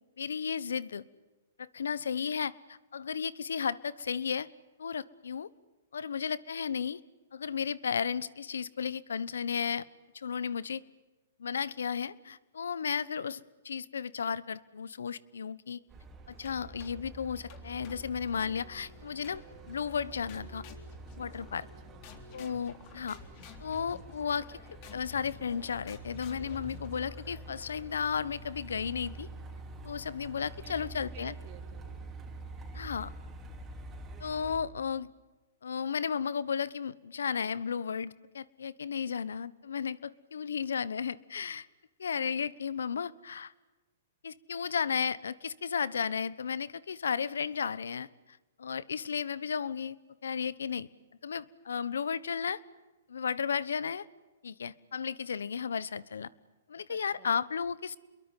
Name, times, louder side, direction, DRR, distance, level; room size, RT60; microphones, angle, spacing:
voice 1, 0.2-1.0 1.6-4.5 4.8-5.5 5.9-7.0 7.3-9.8 10.1-10.8 11.4-13.4 13.6-15.8 16.3-20.6 21.2-21.6 22.3-23.2 23.6-24.6 24.9-29.3 29.8-31.3 32.7-33.1 34.2-35.1 35.6-41.7 42.0-43.5 44.2-48.1 48.6-50.0 50.2-50.9 51.2-52.6 53.1-54.1 54.4-56.3 56.7-58.0, left 6 dB, 90° left, 20 dB, 1.1 m, -34 dB
Truck, 15.9-34.6, right 2 dB, 15° right, 4.7 m, -47 dB
sound 1, 16.5-17.1 17.5-18.7 19.2-19.8 20.3-21.7 22.0-27.7, left 6 dB, 40° left, 3.7 m, -52 dB
voice 2, 21.6-22.0 30.6-32.0 56.9-57.3, right 13 dB, 35° right, 7 dB, 3.2 m, -54 dB
27.5 x 22.5 x 9.2 m, 1.2 s
hypercardioid pair, 145°, 0 cm